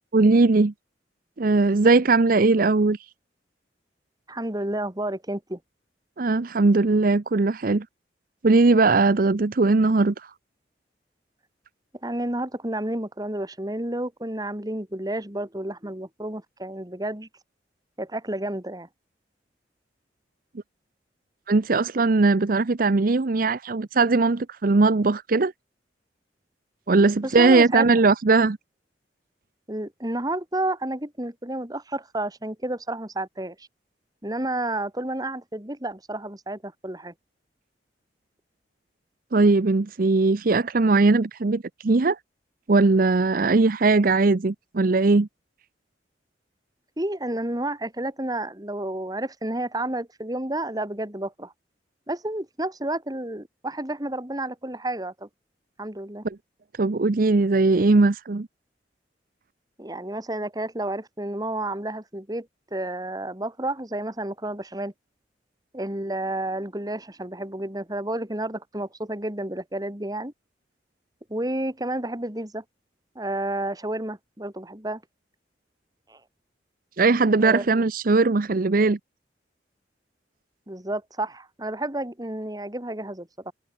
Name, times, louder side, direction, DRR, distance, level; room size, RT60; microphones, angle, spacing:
voice 1, 0.1-0.7 1.4-3.0 6.2-7.9 8.4-10.3 21.5-25.5 26.9-28.6 39.3-42.2 42.7-45.3 56.2-56.4 56.7-58.5 77.0-79.0, right 3 dB, 50° right, 0.6 m, -19 dB
voice 2, 4.3-5.6 12.0-17.3 18.0-18.9 27.2-27.9 29.7-33.7 34.2-37.1 47.0-51.5 52.1-55.3 55.8-56.2 59.8-64.9 65.7-70.3 71.3-72.6 73.1-75.0 76.1-76.2 77.4-77.8 80.7-83.5, right 1 dB, 20° right, 3.0 m, -31 dB
head